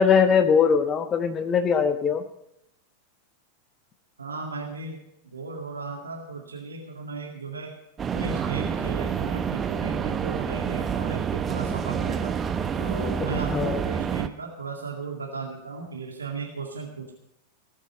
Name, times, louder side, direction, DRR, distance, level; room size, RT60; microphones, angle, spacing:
voice 1, 0.0-2.2 13.3-13.8, left 6 dB, 25° left, 9 dB, 1.2 m, -21 dB
voice 2, 4.2-7.7 8.1-12.4 12.8-17.1, right 4 dB, 75° right, 0 dB, 2.1 m, -35 dB
sound 1, 8.0-14.3, right 7 dB, 20° right, 0.9 m, -28 dB
19.0 x 8.8 x 6.3 m, 0.80 s
figure-of-eight pair, 90°, 0 cm